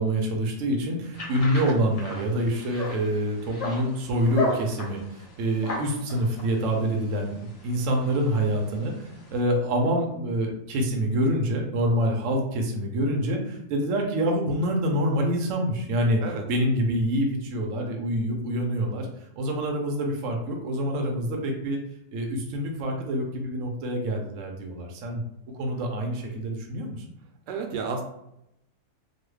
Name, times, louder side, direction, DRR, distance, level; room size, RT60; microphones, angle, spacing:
voice 1, 0.0-5.0 5.4-19.1 19.4-21.8 22.1-25.2 25.6-27.0, equal, 65° right, 1 dB, 0.8 m, -26 dB
sound 1, 1.1-9.4, left 2 dB, 55° left, 0.4 m, -36 dB
voice 2, 27.5-28.0, right 5 dB, 80° right, 3 dB, 1.2 m, -31 dB
3.0 x 2.2 x 3.2 m, 0.80 s
omnidirectional pair, 1.9 m